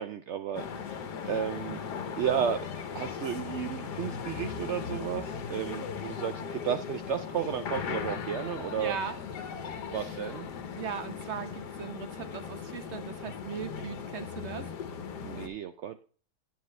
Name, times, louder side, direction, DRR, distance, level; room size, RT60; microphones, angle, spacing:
voice 1, 0.0-1.8 2.2-2.7 2.9-8.9 9.9-10.5 15.2-16.0, right 8 dB, 85° right, 10 dB, 0.6 m, -33 dB
sound 1, 0.5-15.5, left 6 dB, 75° left, 1.5 m, -38 dB
voice 2, 8.8-9.2 9.9-10.2 10.8-14.7, right 7 dB, 45° right, 9 dB, 1.2 m, -39 dB
9.1 x 7.7 x 3.2 m, 0.39 s
omnidirectional pair, 1.8 m